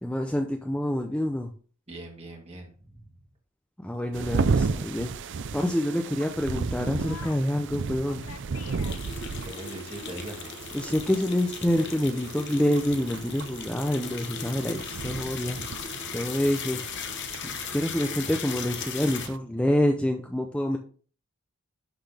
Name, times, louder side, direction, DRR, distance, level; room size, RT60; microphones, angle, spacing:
voice 1, 0.0-1.5 3.8-5.1 5.5-8.3 10.7-15.6 16.1-17.0 17.7-20.8, left 1 dB, 5° left, 3 dB, 0.5 m, -27 dB
voice 2, 1.9-3.1 9.4-10.5, right 1 dB, 30° right, 1 dB, 1.8 m, -41 dB
sound 1, 4.1-19.4, right 4 dB, 55° right, 0.4 m, -34 dB
sound 2, 6.8-7.6 8.1-9.5 9.7-9.8 10.2-10.3 13.6-14.0 14.5-16.8, left 7 dB, 75° left, 0.7 m, -48 dB
sound 3, 8.6-19.3, left 7 dB, 50° left, 0.9 m, -38 dB
11.5 x 4.0 x 3.4 m, 0.41 s
head